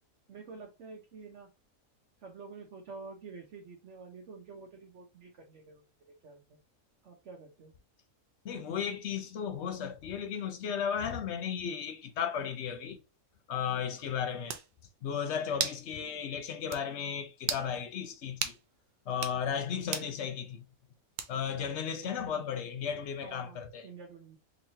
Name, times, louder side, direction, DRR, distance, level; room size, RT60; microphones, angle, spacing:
voice 1, 0.3-1.5 2.2-5.8 6.2-6.6 7.0-7.7 21.5-21.7 22.0-22.2 23.2-24.4, right 4 dB, 60° right, 1.0 m, -49 dB
voice 2, 8.4-13.0 13.5-14.6 15.0-18.6 19.1-20.6 21.3-23.9, left 7 dB, 60° left, 0.9 m, -35 dB
sound 1, 14.0-14.1 14.5-14.7 15.6-15.8 16.2-16.3 16.7-16.8 17.4-17.7 18.4-18.6 19.1-19.4 19.9-20.1 21.2-21.5, right 7 dB, 80° right, 0.4 m, -34 dB
3.9 x 3.0 x 2.7 m
omnidirectional pair, 1.5 m